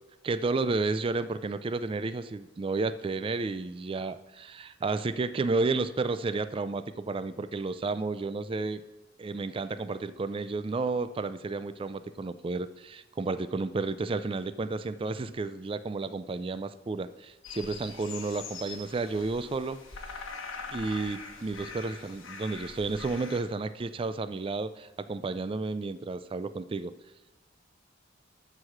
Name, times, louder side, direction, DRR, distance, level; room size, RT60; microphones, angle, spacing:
voice 1, 0.2-8.8 9.2-19.8 20.7-26.9, right 3 dB, 25° right, 13 dB, 0.3 m, -32 dB
sound 1, 17.4-23.4, left 4 dB, 85° left, 1.3 m, -43 dB
12.5 x 4.8 x 5.9 m, 1.1 s
head